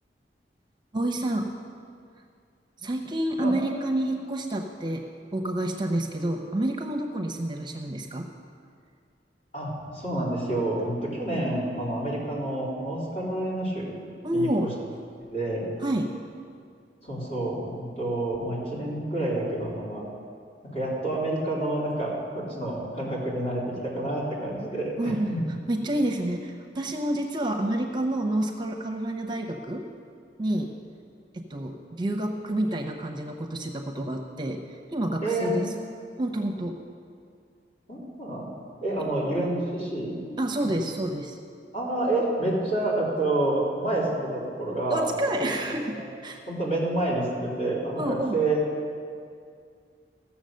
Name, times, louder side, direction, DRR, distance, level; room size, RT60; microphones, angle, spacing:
voice 1, 0.9-1.5 2.8-8.3 14.2-14.7 15.8-16.1 25.0-25.3 25.7-29.9 30.4-30.7 31.3-35.7 36.2-36.8 39.0-39.1 40.4-41.4 44.9-46.4 48.0-48.4, right 1 dB, 25° right, 3 dB, 0.8 m, -29 dB
voice 2, 9.5-13.9 14.3-14.7 15.3-15.6 17.0-20.0 20.6-25.4 35.2-35.6 37.9-38.5 38.8-40.2 40.6-40.7 41.7-45.1 45.4-45.5 46.0-46.1 46.5-48.7, right 1 dB, 45° left, -6 dB, 3.8 m, -28 dB
15.5 x 7.2 x 6.5 m, 2.3 s
head